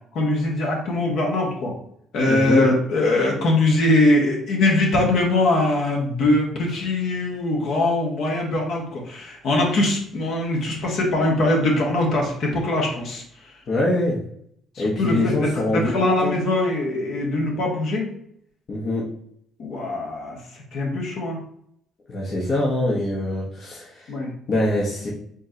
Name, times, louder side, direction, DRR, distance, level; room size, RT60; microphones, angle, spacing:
voice 1, 0.1-1.8 2.1-13.6 14.7-18.1 19.6-21.4 24.1-24.3, left 2 dB, 65° left, -1 dB, 1.3 m, -22 dB
voice 2, 2.3-2.6 13.7-14.2 14.8-16.4 18.7-19.0 22.1-24.1 24.5-25.1, left 1 dB, 50° left, -4 dB, 1.0 m, -24 dB
4.4 x 3.1 x 2.7 m, 0.68 s
hypercardioid pair, 60°, 0 cm